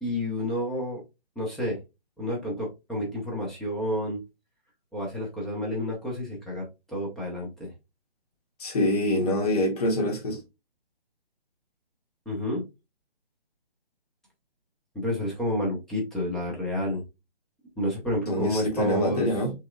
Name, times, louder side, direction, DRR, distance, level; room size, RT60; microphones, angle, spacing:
voice 1, 0.0-1.0 1.4-1.8 2.2-4.2 4.9-7.5 12.3-12.7 14.9-17.0 17.8-19.3, left 1 dB, ahead, 0.7 m, -30 dB
voice 2, 8.6-10.4 18.3-19.5, left 1 dB, 40° left, 1.6 m, -25 dB
5.8 x 3.5 x 2.4 m
figure-of-eight pair, 140°, 30 cm